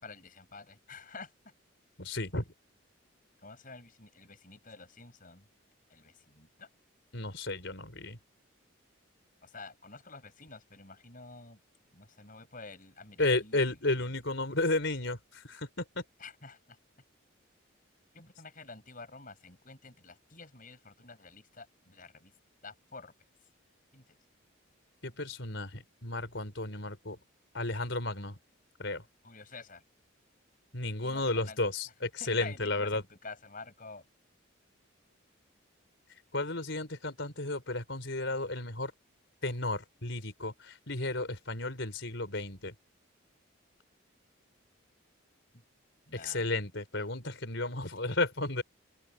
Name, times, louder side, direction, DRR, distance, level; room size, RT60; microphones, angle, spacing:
voice 1, 0.0-1.3 3.4-5.4 5.9-6.7 9.4-11.6 11.9-13.7 16.2-16.6 18.1-22.3 22.6-23.1 23.9-24.0 29.2-29.8 31.0-31.6 32.2-34.0 46.1-46.5, left 3 dB, 40° left, 7.2 m, -49 dB
voice 2, 2.0-2.4 7.1-8.2 13.2-16.0 25.0-27.2 27.5-28.3 28.8-29.0 30.7-33.0 36.3-38.9 39.4-42.7 46.1-48.6, left 2 dB, 60° left, 4.9 m, -33 dB
open air
head